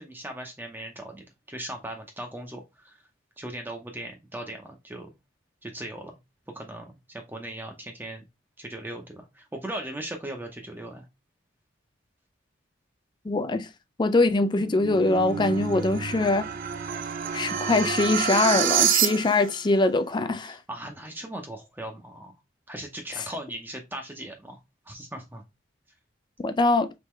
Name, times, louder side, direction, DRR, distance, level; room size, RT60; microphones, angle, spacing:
voice 1, 0.0-3.0 3.4-5.1 5.6-6.2 6.5-8.3 8.6-11.1 20.4-22.3 22.7-24.6 24.9-25.4, right 1 dB, 10° right, 0.7 m, -38 dB
voice 2, 13.3-13.7 14.0-16.5 17.3-20.6 26.4-26.9, left 2 dB, 25° left, 0.3 m, -23 dB
sound 1, 14.4-19.6, right 8 dB, 50° right, 0.4 m, -27 dB
3.7 x 3.4 x 3.0 m
head